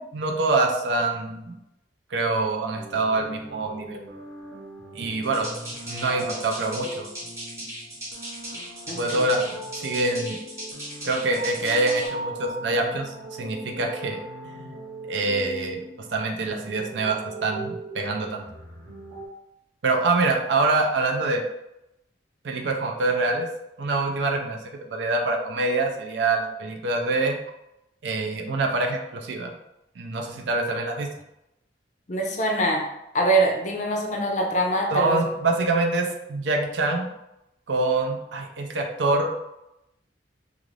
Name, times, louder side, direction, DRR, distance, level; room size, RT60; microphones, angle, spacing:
voice 1, 0.0-1.5 2.1-4.0 5.0-5.5 5.9-7.1 9.0-9.4 9.8-10.4 11.0-14.7 15.1-15.8 16.1-18.4 19.8-21.4 22.4-23.5 23.8-24.6 24.9-27.4 28.0-29.5 30.0-31.1 34.9-37.1 37.7-39.3, right 3 dB, 75° right, 2 dB, 0.5 m, -25 dB
sound 1, 2.7-19.3, right 1 dB, 55° right, 0.9 m, -40 dB
sound 2, 5.2-12.1, right 1 dB, 15° right, 1.0 m, -38 dB
voice 2, 8.9-9.2 32.1-32.8 33.1-35.3, right 1 dB, 40° left, 1 dB, 0.5 m, -24 dB
2.5 x 2.5 x 3.1 m, 0.87 s
head